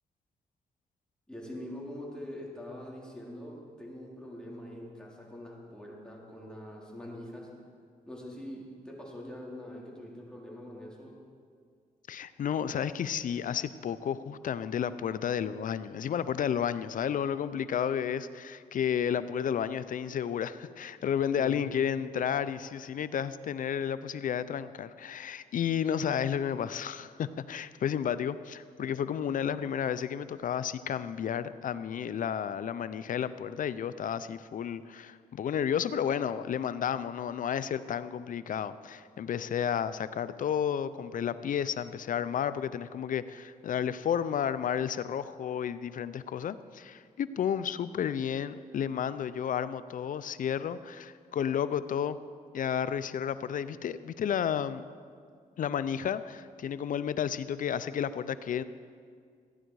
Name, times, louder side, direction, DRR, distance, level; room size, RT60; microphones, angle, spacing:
voice 1, 1.3-7.5 8.1-11.2 21.3-21.8, left 1 dB, 5° left, -4 dB, 3.3 m, -44 dB
voice 2, 12.1-52.2 52.5-54.8 55.6-58.6, left 8 dB, 60° left, 14 dB, 0.5 m, -32 dB
14.5 x 10.0 x 4.7 m, 2.1 s
cardioid pair, 70°, 15 cm